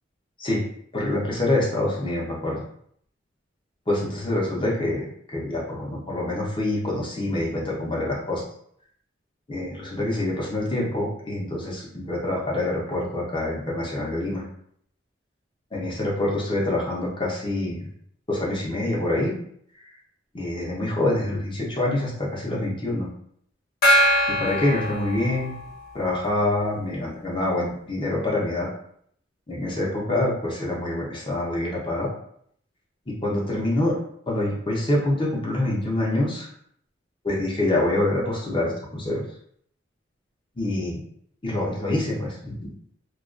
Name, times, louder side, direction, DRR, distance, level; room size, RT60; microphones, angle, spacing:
voice 1, 0.9-2.6 3.9-5.0 5.3-8.4 9.5-14.4 15.7-17.9 18.3-19.3 20.3-23.1 24.3-25.5 25.9-28.7 29.5-32.1 33.1-33.9 34.3-36.5 37.2-39.2 40.6-41.0 41.4-42.7, left 1 dB, 25° left, -4 dB, 0.6 m, -26 dB
Gong, 23.8-25.8, equal, 50° left, 0.8 m, -22 dB
2.3 x 2.2 x 2.4 m, 0.66 s
head